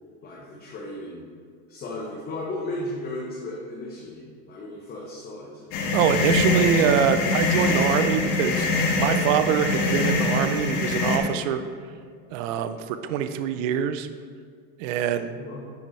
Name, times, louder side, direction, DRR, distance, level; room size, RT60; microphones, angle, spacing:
voice 1, 0.2-1.3 1.7-5.6 11.3-11.4 15.4-15.7, left 1 dB, 20° left, -4 dB, 0.8 m, -35 dB
sound 1, 5.7-11.2, left 3 dB, 40° left, 1.2 m, -23 dB
voice 2, 5.9-11.6 12.3-14.1 14.8-15.4, right 9 dB, 55° right, 10 dB, 0.5 m, -24 dB
10.5 x 4.3 x 3.2 m, 2.1 s
supercardioid pair, 135°, 49 cm